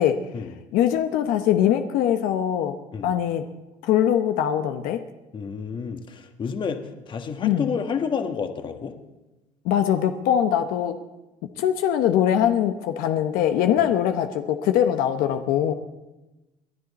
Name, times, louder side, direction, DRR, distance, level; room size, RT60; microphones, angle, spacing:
voice 1, 0.7-2.8 3.0-3.4 3.8-5.0 7.4-7.7 9.6-11.0 11.6-15.7, left 10 dB, 75° left, 7 dB, 1.0 m, -22 dB
voice 2, 5.3-8.9, left 6 dB, 35° left, 6 dB, 1.5 m, -30 dB
28.5 x 10.5 x 4.2 m, 1.1 s
cardioid pair, 130°, 14 cm